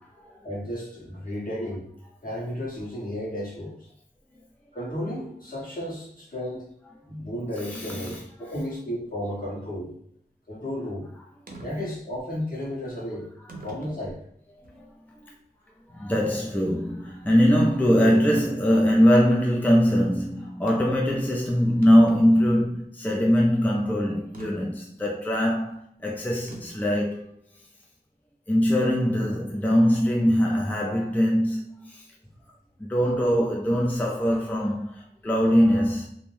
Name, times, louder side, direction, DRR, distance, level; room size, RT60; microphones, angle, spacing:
voice 1, 0.4-1.9 2.2-3.8 4.7-6.6 7.1-9.9 10.5-11.1 11.6-13.3 13.6-14.2, equal, 55° left, 1.3 m, -33 dB
voice 2, 7.7-8.2 14.7-14.8 15.9-27.2 28.5-32.0 32.8-36.1, equal, 10° left, 0.4 m, -22 dB
sound 1, 11.5-11.7 12.6-12.7 13.5-14.0 14.6-14.7 18.1-18.5 20.7-21.0 21.4-21.5 21.7-22.8 24.3-24.5 26.5-26.9, right 2 dB, 55° right, 0.6 m, -42 dB
2.6 x 2.1 x 3.1 m
wide cardioid pair, 45°, 17 cm